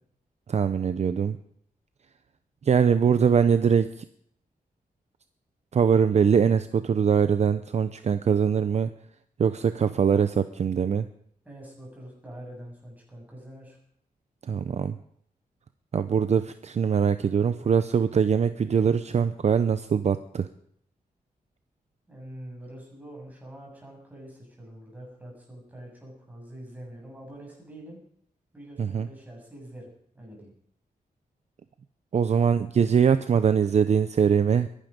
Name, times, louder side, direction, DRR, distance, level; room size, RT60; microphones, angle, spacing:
voice 1, 0.5-1.4 2.6-4.0 5.7-8.9 9.4-11.1 14.4-15.0 15.9-20.5 28.8-29.1 32.1-34.7, right 7 dB, 50° right, 12 dB, 0.7 m, -22 dB
voice 2, 11.4-13.8 22.1-28.0 28.5-29.9 30.1-30.5, right 1 dB, 10° right, -2 dB, 7.8 m, -45 dB
22.0 x 11.5 x 5.2 m, 0.66 s
wide cardioid pair, 160°, 15 cm